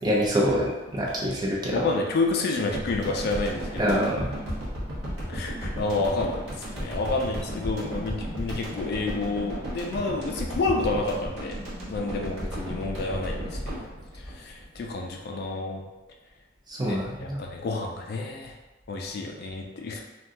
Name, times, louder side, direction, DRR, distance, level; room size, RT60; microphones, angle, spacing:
voice 1, 0.0-1.8 3.8-4.4 16.7-17.4, equal, 20° right, -4 dB, 0.5 m, -26 dB
voice 2, 1.7-4.1 5.3-6.4 6.7-13.9 14.1-15.8 16.8-18.5 18.9-20.0, left 3 dB, 55° left, 1 dB, 0.4 m, -29 dB
sound 1, 2.7-15.2, equal, 90° right, 0.9 m, -34 dB
2.6 x 2.2 x 3.5 m, 1.1 s
head